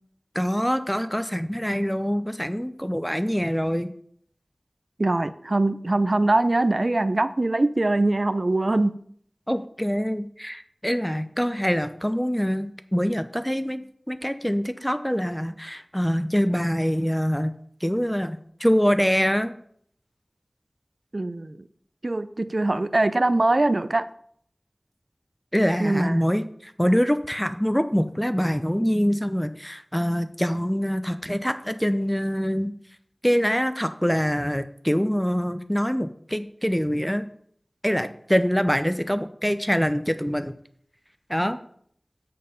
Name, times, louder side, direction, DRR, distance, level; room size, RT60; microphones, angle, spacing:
voice 1, 0.3-3.9 9.5-13.8 14.1-17.5 17.8-19.5 25.5-32.7 33.2-37.3 37.8-40.5 41.3-41.6, equal, 5° left, 10 dB, 0.6 m, -24 dB
voice 2, 5.0-9.0 21.1-21.6 22.0-24.0 25.8-26.2, right 2 dB, 60° right, 13 dB, 0.5 m, -22 dB
7.5 x 6.8 x 5.1 m, 0.63 s
wide cardioid pair, 50°, 0 cm